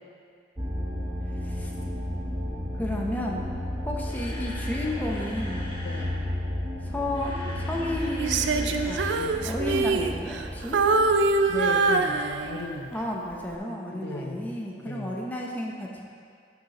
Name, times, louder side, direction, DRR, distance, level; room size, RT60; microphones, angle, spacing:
sound 1, 0.6-12.5, left 1 dB, 25° right, 0.9 m, -33 dB
voice 1, 1.4-1.7 2.8-3.5 3.8-5.7 6.8-10.8 12.9-16.1, left 1 dB, 10° left, -2 dB, 0.7 m, -32 dB
Camera, 3.8-6.2 6.9-9.2 9.5-9.6 10.1-10.2, left 1 dB, 30° left, 1.2 m, -42 dB
voice 2, 5.8-6.2 11.5-13.1 13.9-15.3, left 2 dB, 65° left, 3 dB, 0.6 m, -37 dB
Female singing, 8.2-10.5 10.7-12.8 13.3-13.5, right 3 dB, 85° right, 0.4 m, -24 dB
13.0 x 5.8 x 3.0 m, 2.2 s
head